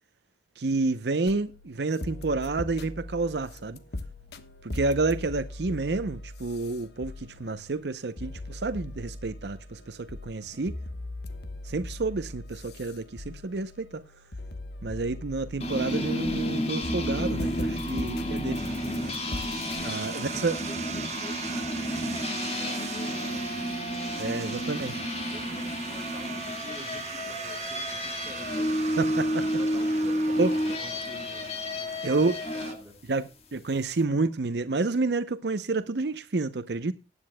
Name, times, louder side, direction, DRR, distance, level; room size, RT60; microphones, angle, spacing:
voice 1, 0.6-3.8 4.6-10.8 11.6-14.0 14.8-18.6 19.8-20.6 24.2-25.0 29.0-29.5 30.4-30.5 32.0-32.4 33.1-36.9, right 3 dB, 75° right, 0.7 m, -29 dB
sound 1, 1.3-19.8, left 2 dB, 70° left, 1.2 m, -40 dB
sound 2, 15.6-32.8, equal, 35° left, 1.9 m, -31 dB
sound 3, 18.5-32.7, right 7 dB, 40° right, 1.0 m, -40 dB
voice 2, 19.7-20.4 20.7-24.4 25.3-29.0 29.6-32.3 32.5-33.0, equal, 10° right, 6.0 m, -48 dB
20.0 x 9.7 x 2.2 m
head